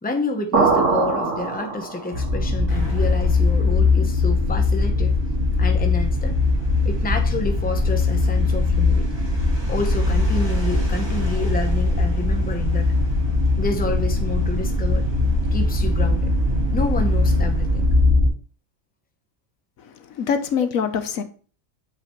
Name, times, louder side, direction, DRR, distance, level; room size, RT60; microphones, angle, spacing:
voice 1, 0.0-5.2 5.6-6.4 6.8-9.2 9.7-12.9 13.6-15.1 15.5-16.3 16.7-17.9 20.1-20.3, left 3 dB, 10° left, 0.8 m, -29 dB
sound 1, 0.5-2.3, right 4 dB, 65° right, 1.6 m, -21 dB
sound 2, 2.1-18.3, left 3 dB, 85° right, 2.7 m, -20 dB
sound 3, 2.7-18.2, right 5 dB, 20° right, 1.6 m, -34 dB
voice 2, 19.8-21.2, left 7 dB, 85° left, 1.3 m, -24 dB
7.5 x 5.9 x 3.2 m
omnidirectional pair, 1.4 m